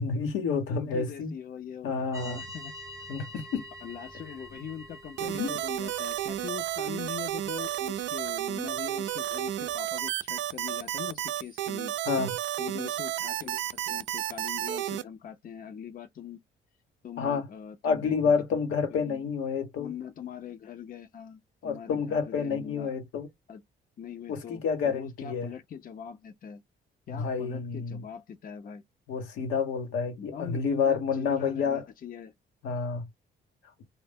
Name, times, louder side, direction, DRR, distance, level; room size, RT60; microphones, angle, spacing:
voice 1, 0.0-1.3 1.8-2.4 3.1-3.7 5.2-5.5 12.1-12.3 17.2-17.5 17.8-19.9 21.6-23.3 24.3-25.5 27.1-28.0 29.1-31.9 32.6-33.1, left 5 dB, 90° left, 1.0 m, -29 dB
voice 2, 0.7-2.7 3.8-11.9 12.6-16.4 17.0-18.6 18.9-19.3 19.8-22.9 23.5-23.6 24.0-26.6 27.1-28.8 30.2-32.3, left 8 dB, 45° left, 0.6 m, -42 dB
sound 1, 2.1-9.8, left 1 dB, 15° right, 0.8 m, -47 dB
sound 2, 5.2-15.0, right 13 dB, 70° right, 0.4 m, -32 dB
2.1 x 2.0 x 3.4 m
cardioid pair, 90°, 20 cm